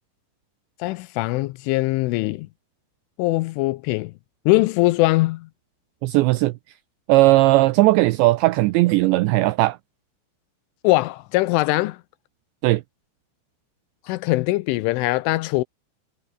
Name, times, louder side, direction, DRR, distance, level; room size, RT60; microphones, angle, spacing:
voice 1, 0.8-2.5 3.2-4.1 4.5-5.5 10.8-12.0 14.1-15.6, left 20 dB, 85° left, 3.2 m, -21 dB
voice 2, 6.0-6.5 7.1-9.8 12.6-12.8, right 19 dB, 80° right, 2.8 m, -17 dB
omnidirectional pair, 5.6 m